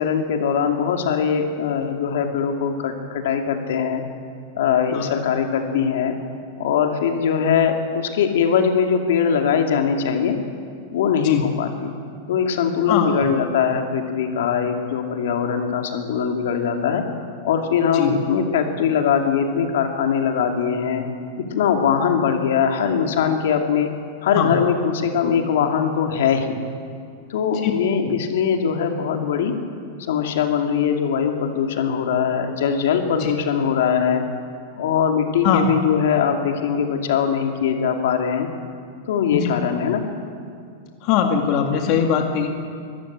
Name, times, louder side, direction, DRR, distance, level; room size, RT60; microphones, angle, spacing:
voice 1, 0.0-4.0 4.5-6.2 6.6-10.4 10.9-11.9 12.3-17.0 17.4-21.0 21.5-23.9 24.2-26.6 27.3-29.5 30.1-34.2 34.8-38.5 39.1-40.0, left 7 dB, 75° left, 4 dB, 2.5 m, -21 dB
voice 2, 12.9-13.3 17.9-18.1 24.4-24.6 27.6-27.7 33.2-33.4 35.4-35.7 39.3-39.5 41.0-42.5, left 7 dB, 45° left, 3 dB, 2.1 m, -21 dB
23.0 x 14.5 x 8.7 m, 2.3 s
supercardioid pair, 145°, 0 cm